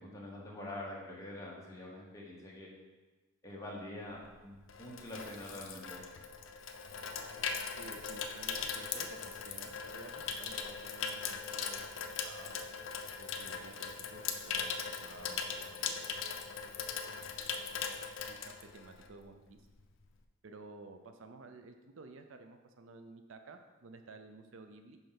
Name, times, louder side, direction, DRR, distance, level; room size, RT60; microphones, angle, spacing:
voice 1, 0.0-2.7 3.4-6.0, left 1 dB, 15° left, -4 dB, 1.3 m, -45 dB
Water tap faucet / Sink (filling or washing), 4.2-19.2 19.5-19.8, left 6 dB, 65° left, 0.5 m, -40 dB
voice 2, 7.8-12.7 13.2-16.2 17.1-17.4 18.3-19.7 20.4-25.0, right 3 dB, 65° right, 6 dB, 0.5 m, -53 dB
5.4 x 4.4 x 5.8 m, 1.3 s
head